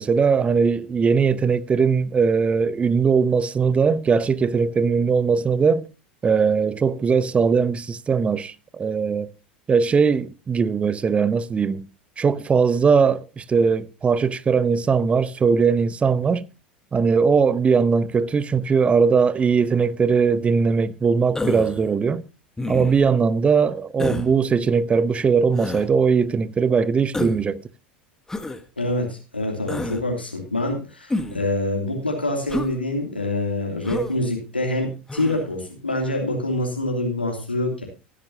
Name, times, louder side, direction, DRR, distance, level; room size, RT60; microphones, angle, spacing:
voice 1, 0.0-5.9 6.2-9.3 9.7-11.9 12.2-16.4 16.9-22.2 22.7-27.6, right 5 dB, 20° right, 0.9 m, -20 dB
Human voice, 21.3-21.8 22.6-23.1 24.0-24.3 25.5-25.9 27.1-27.5 28.3-28.6 29.7-30.0 31.1-31.5 32.5-32.7 33.8-34.1 35.1-35.4, left 2 dB, 10° left, 1.4 m, -28 dB
voice 2, 28.8-37.8, left 1 dB, 90° left, 2.9 m, -26 dB
17.5 x 10.5 x 2.8 m
figure-of-eight pair, 80°, 5 cm